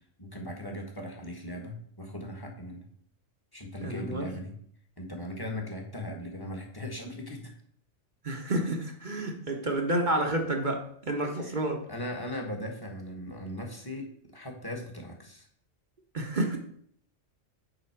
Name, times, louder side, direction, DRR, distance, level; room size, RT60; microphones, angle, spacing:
voice 1, 0.2-2.8 3.5-4.5 5.0-7.5 11.4-11.6 11.9-14.1 14.3-15.5, left 1 dB, 20° left, 1 dB, 1.4 m, -38 dB
voice 2, 3.8-4.3 8.2-11.8 16.1-16.6, right 1 dB, 40° right, 3 dB, 1.2 m, -30 dB
9.1 x 3.9 x 5.8 m, 0.63 s
omnidirectional pair, 1.3 m